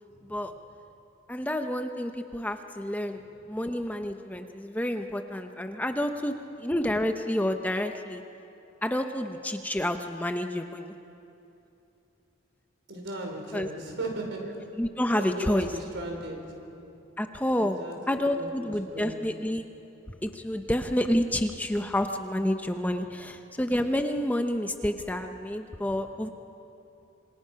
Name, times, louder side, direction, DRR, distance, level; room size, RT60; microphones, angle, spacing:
voice 1, 1.3-6.3 6.6-8.2 8.8-10.9 13.5-13.7 14.8-15.7 17.2-17.8 18.1-19.6 20.2-26.3, left 1 dB, 10° left, 6 dB, 0.7 m, -29 dB
voice 2, 12.9-14.4 15.1-16.4 17.5-19.3, right 2 dB, 65° right, 1 dB, 4.9 m, -37 dB
26.5 x 25.0 x 5.8 m, 2.8 s
head